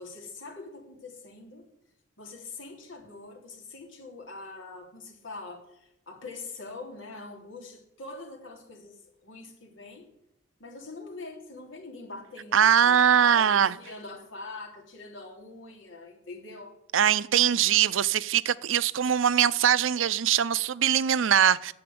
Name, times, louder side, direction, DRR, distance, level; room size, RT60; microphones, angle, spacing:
voice 1, 0.0-1.6 2.2-10.1 10.6-16.8, left 3 dB, 80° left, 3.3 m, -43 dB
voice 2, 12.5-13.8 16.9-21.7, right 9 dB, 85° right, 0.5 m, -22 dB
10.5 x 7.9 x 9.4 m
head